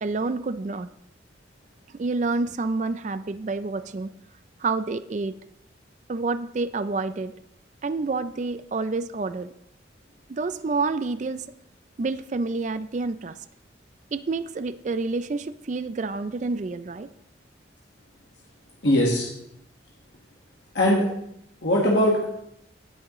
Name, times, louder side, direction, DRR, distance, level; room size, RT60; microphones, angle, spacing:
voice 1, 0.0-0.9 1.9-4.1 4.6-5.3 6.1-7.3 7.8-9.5 10.3-11.4 12.0-13.4 14.1-17.1, right 3 dB, 40° right, 13 dB, 0.4 m, -28 dB
voice 2, 18.8-19.3 20.7-21.1 21.6-22.2, left 1 dB, 70° left, -3 dB, 1.5 m, -20 dB
17.0 x 6.2 x 3.1 m, 0.77 s
head